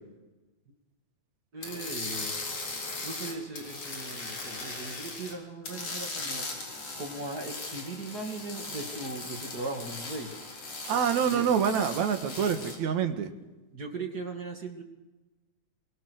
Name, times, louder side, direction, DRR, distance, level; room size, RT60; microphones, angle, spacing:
voice 1, 1.5-2.4 3.0-6.5 7.0-10.3 11.3-11.5 13.7-14.8, right 2 dB, 35° right, 3 dB, 2.8 m, -38 dB
sound 1, 1.6-5.3 5.6-12.8, left 3 dB, 55° left, 5.1 m, -38 dB
voice 2, 10.8-13.3, right 7 dB, 75° right, 7 dB, 3.0 m, -26 dB
27.0 x 22.5 x 6.6 m, 1.1 s
omnidirectional pair, 3.3 m